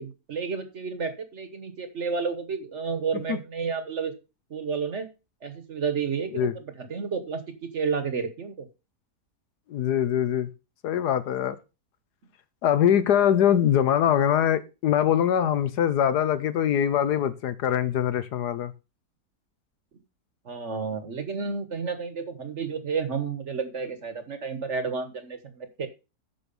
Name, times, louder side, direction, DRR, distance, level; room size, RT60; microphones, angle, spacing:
voice 1, 0.0-4.1 4.5-5.1 5.4-8.7 20.4-25.9, right 5 dB, 45° right, 1.3 m, -31 dB
voice 2, 9.7-10.5 10.8-11.6 12.6-18.7, left 9 dB, 70° left, 1.4 m, -23 dB
9.2 x 6.2 x 5.3 m
omnidirectional pair, 1.8 m